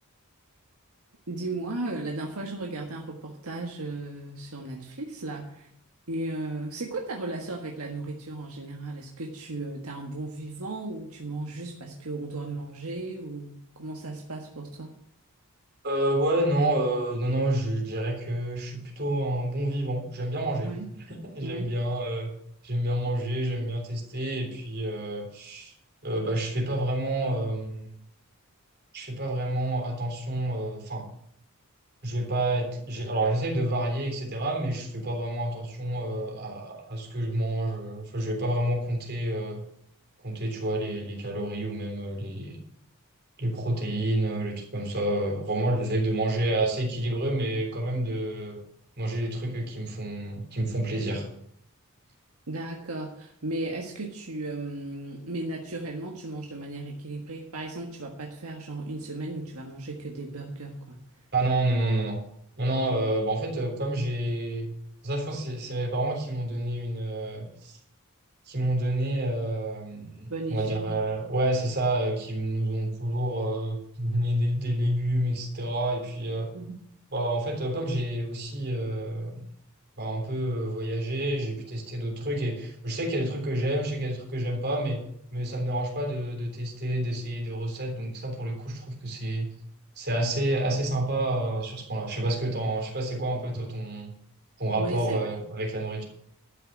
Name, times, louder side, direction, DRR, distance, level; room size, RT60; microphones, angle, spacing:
voice 1, 1.3-5.7 6.1-14.9 20.6-20.9 21.4-21.7 52.5-61.0 70.3-70.9 76.5-76.8 94.8-95.2, right 2 dB, 80° right, 1 dB, 1.6 m, -35 dB
voice 2, 15.8-20.7 21.3-22.3 22.6-25.7 26.0-28.0 28.9-31.1 32.0-39.6 40.2-42.6 43.4-48.6 49.0-51.3 61.3-62.2 62.6-64.7 65.0-67.8 68.5-76.5 77.1-79.4 80.0-85.0 85.3-89.5 90.0-94.1 94.6-96.0, right 1 dB, 50° right, 1 dB, 3.6 m, -29 dB
12.0 x 6.1 x 8.7 m, 0.70 s
head